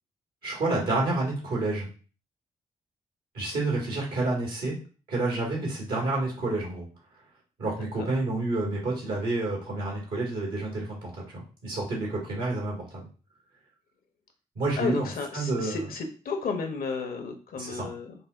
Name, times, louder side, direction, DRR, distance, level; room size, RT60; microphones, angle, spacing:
voice 1, 0.4-1.9 3.3-4.7 5.1-6.9 7.6-13.1 14.5-15.8 17.5-17.9, right 2 dB, 80° right, -3 dB, 1.6 m, -29 dB
voice 2, 14.8-18.1, left 4 dB, 70° left, 5 dB, 0.7 m, -33 dB
5.1 x 2.0 x 2.4 m, 0.37 s
supercardioid pair, 40°, 16 cm